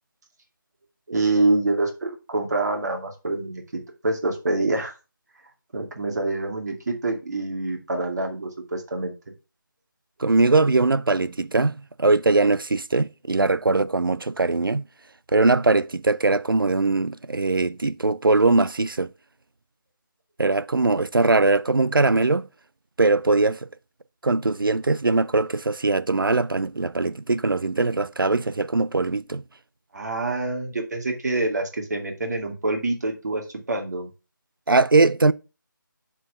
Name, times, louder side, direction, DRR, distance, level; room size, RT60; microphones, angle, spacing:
voice 1, 1.1-4.9 5.7-9.1 29.9-34.1, right 2 dB, 55° right, 2.3 m, -26 dB
voice 2, 10.2-11.7 12.0-14.8 15.3-19.1 20.4-22.5 23.0-23.6 24.2-29.4 34.7-35.3, right 3 dB, 85° right, 0.5 m, -21 dB
7.1 x 4.6 x 5.6 m
figure-of-eight pair, 160°, 11 cm